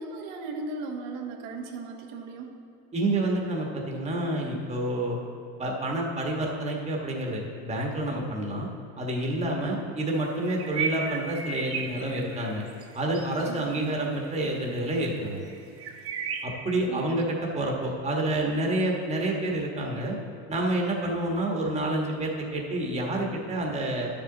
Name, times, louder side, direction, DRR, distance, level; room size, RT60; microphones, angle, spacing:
voice 1, 0.0-2.6 13.5-13.9 16.9-17.2, right 3 dB, 80° right, 1 dB, 1.1 m, -37 dB
voice 2, 2.9-5.2 5.6-8.7 9.0-12.6 12.9-15.4 16.4-20.2 20.5-24.1, right 1 dB, 20° right, -1 dB, 1.3 m, -28 dB
sound 1, 10.4-12.9 13.1-13.5 14.3-14.4 14.7-14.9 15.4-16.4, right 6 dB, 40° right, 1.1 m, -34 dB
10.5 x 6.8 x 3.9 m, 2.5 s
cardioid pair, 120°, 34 cm